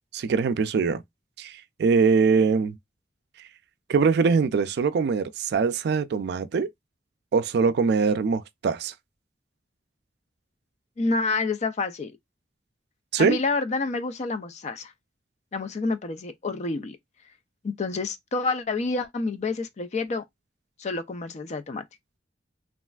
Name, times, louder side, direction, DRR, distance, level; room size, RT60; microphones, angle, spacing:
voice 1, 0.1-1.0 1.4-2.8 3.9-6.7 7.3-8.9 13.1-13.4, right 5 dB, 65° right, 0.3 m, -22 dB
voice 2, 11.0-12.1 13.2-14.9 15.5-17.0 17.6-20.2 20.8-21.8, left 3 dB, 40° left, 0.4 m, -28 dB
3.2 x 2.4 x 2.3 m
head